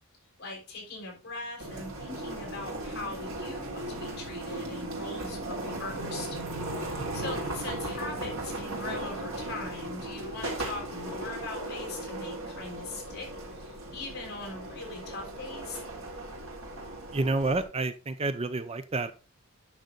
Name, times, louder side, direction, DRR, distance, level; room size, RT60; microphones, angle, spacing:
voice 1, 0.4-6.4 6.8-15.8, left 3 dB, 50° left, 0 dB, 5.8 m, -41 dB
sound 1, 1.6-17.6, right 1 dB, 75° right, 3.3 m, -37 dB
voice 2, 17.1-19.1, right 2 dB, 30° right, 11 dB, 0.6 m, -29 dB
10.5 x 6.3 x 3.9 m, 0.31 s
head